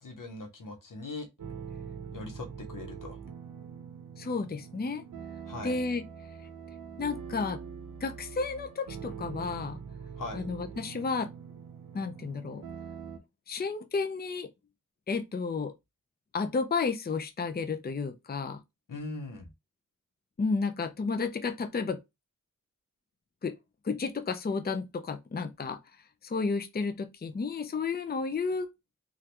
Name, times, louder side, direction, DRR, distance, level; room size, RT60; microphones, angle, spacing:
voice 1, 0.0-1.3 2.1-3.2 5.4-5.8 10.2-10.5 18.9-19.5, left 2 dB, 85° left, 0.9 m, -40 dB
sound 1, 1.4-13.2, right 6 dB, 85° right, 0.6 m, -43 dB
voice 2, 4.2-5.0 5.6-6.0 7.0-7.6 8.0-9.8 10.3-11.3 11.9-12.6 13.5-14.5 15.1-15.7 16.3-18.6 20.4-22.0 23.4-23.5 23.8-25.8 26.2-28.7, left 4 dB, 30° left, 0.5 m, -32 dB
3.2 x 2.4 x 2.9 m
wide cardioid pair, 45°, 31 cm